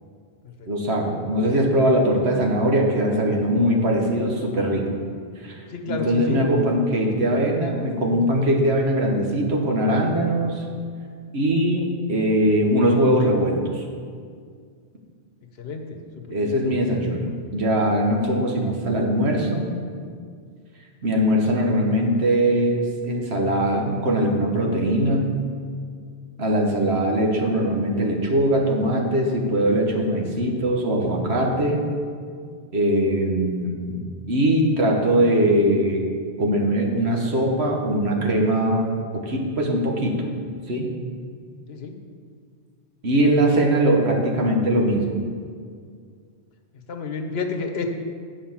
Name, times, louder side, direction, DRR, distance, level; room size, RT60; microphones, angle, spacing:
voice 1, 0.7-4.8 5.4-10.6 11.3-13.8 16.3-19.7 21.0-25.3 26.4-31.8 32.7-34.0 34.3-36.0 36.4-40.2 40.7-40.9 43.0-45.0, right 1 dB, 65° right, 0 dB, 1.5 m, -21 dB
voice 2, 5.7-6.4 15.6-16.0 16.3-16.5 26.8-26.9 41.7-41.9 46.9-47.9, left 4 dB, 65° left, 4 dB, 1.1 m, -30 dB
8.7 x 5.0 x 7.2 m, 2.1 s
omnidirectional pair, 1.2 m